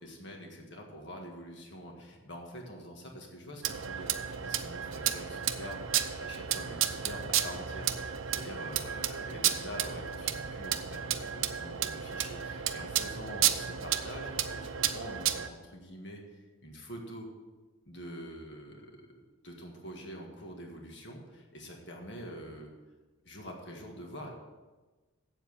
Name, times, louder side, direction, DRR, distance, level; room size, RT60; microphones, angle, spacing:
voice 1, 0.0-17.3 17.9-19.1 19.4-22.7 23.3-24.3, equal, 55° left, 1 dB, 1.8 m, -45 dB
sound 1, 3.6-15.5, right 10 dB, 70° right, 0.6 m, -33 dB
8.1 x 7.4 x 7.1 m, 1.3 s
head